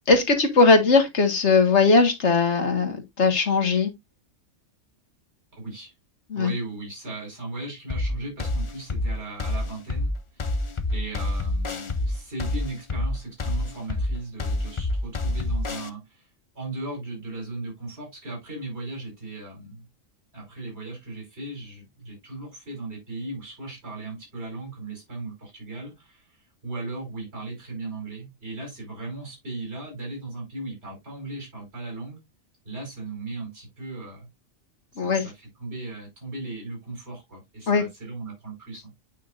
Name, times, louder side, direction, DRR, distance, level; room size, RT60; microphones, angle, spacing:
voice 1, 0.1-3.9 6.3-6.5 35.0-35.3 37.7-37.8, left 4 dB, 60° left, 1.9 m, -19 dB
voice 2, 5.6-5.9 6.4-16.3 16.6-19.8 20.3-26.3 26.6-32.2 32.7-34.3 35.0-38.9, right 2 dB, 55° right, 5.4 m, -37 dB
sound 1, 7.9-15.9, left 2 dB, 35° left, 0.5 m, -27 dB
9.1 x 5.6 x 2.5 m
omnidirectional pair, 1.3 m